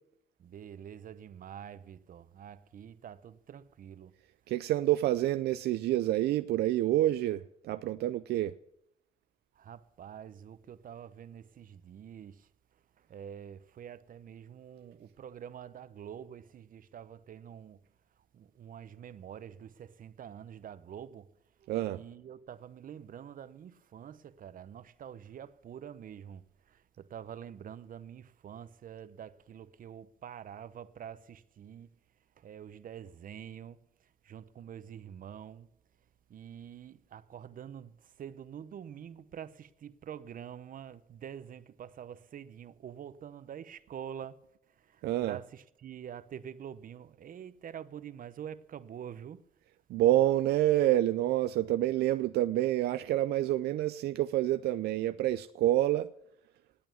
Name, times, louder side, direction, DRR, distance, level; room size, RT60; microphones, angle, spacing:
voice 1, 0.4-4.2 9.5-17.8 18.2-21.3 21.6-32.0 32.4-35.7 36.3-49.5, right 9 dB, 55° right, 0.9 m, -46 dB
voice 2, 4.5-8.5 21.7-22.0 45.0-45.4 49.9-56.1, right 14 dB, 80° right, 0.5 m, -28 dB
18.5 x 8.7 x 7.1 m
cardioid pair, 75°, 16 cm